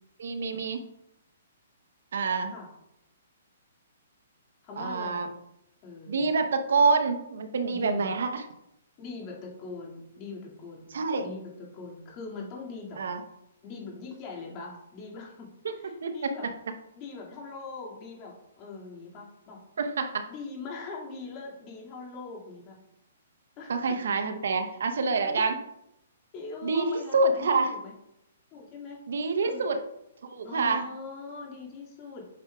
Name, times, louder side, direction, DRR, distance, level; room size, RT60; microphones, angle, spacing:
voice 1, 0.2-0.8 2.1-2.5 4.8-5.3 6.1-8.4 10.9-11.3 13.0-13.2 15.6-16.3 19.8-20.3 23.7-25.6 26.6-27.8 29.1-29.8 30.2-30.9, right 4 dB, 75° right, 7 dB, 0.8 m, -27 dB
voice 2, 4.6-5.3 5.8-6.3 7.7-8.1 9.0-10.9 11.2-13.0 13.6-16.5 17.0-19.6 20.3-22.8 23.6-23.7 25.0-25.5 26.3-27.9 28.5-29.0 29.4-29.6 30.4-32.3, left 4 dB, 30° left, -2 dB, 2.1 m, -42 dB
8.6 x 6.0 x 2.3 m, 0.83 s
hypercardioid pair, 150°, 0 cm